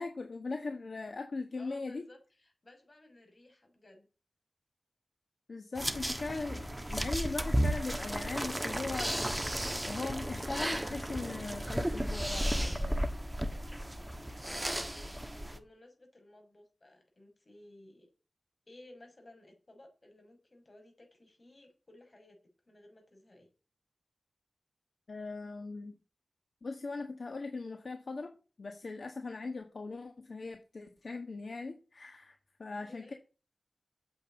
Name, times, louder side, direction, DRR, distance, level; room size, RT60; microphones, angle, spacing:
voice 1, 0.0-2.1 5.5-9.4 9.9-13.1 25.1-25.9 26.6-28.3 28.6-33.1, left 3 dB, 65° left, 5 dB, 1.6 m, -40 dB
voice 2, 1.6-4.1 14.7-18.1 18.7-22.4 22.7-23.5 32.9-33.2, left 1 dB, 40° left, 3 dB, 5.7 m, -57 dB
sound 1, 5.8-15.6, equal, 10° right, 1.4 m, -34 dB
9.2 x 7.9 x 8.1 m, 0.34 s
wide cardioid pair, 85°, 0 cm